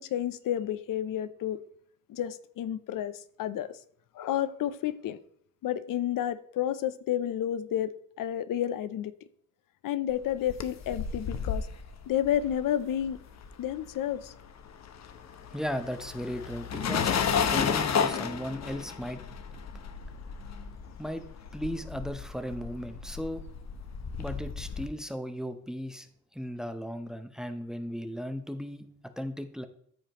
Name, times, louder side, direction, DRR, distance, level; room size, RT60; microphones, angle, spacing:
voice 1, 0.0-1.6 2.1-3.8 4.1-5.2 5.6-9.1 9.8-11.7 12.1-13.2 13.6-14.3, left 11 dB, 85° left, 14 dB, 0.6 m, -31 dB
sound 1, 10.2-13.9 14.1-24.9, left 7 dB, 55° left, 0.9 m, -33 dB
voice 2, 15.5-19.2 21.0-23.4 24.2-26.1 26.3-28.9 29.2-29.7, equal, ahead, 9 dB, 0.7 m, -36 dB
13.5 x 5.0 x 3.0 m, 0.66 s
cardioid pair, 120°, 32 cm